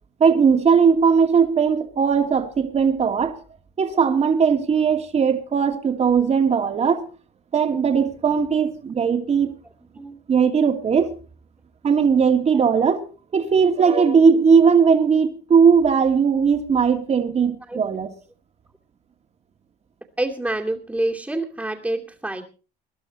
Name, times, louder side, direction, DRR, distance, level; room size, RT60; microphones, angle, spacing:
voice 1, 0.2-3.4 3.8-7.1 7.5-9.5 10.3-11.1 11.8-13.0 13.3-18.1, right 6 dB, 40° right, 2.6 m, -18 dB
voice 2, 20.2-22.4, right 1 dB, 10° right, 2.5 m, -27 dB
21.0 x 11.5 x 4.2 m
cardioid pair, 110°, 17 cm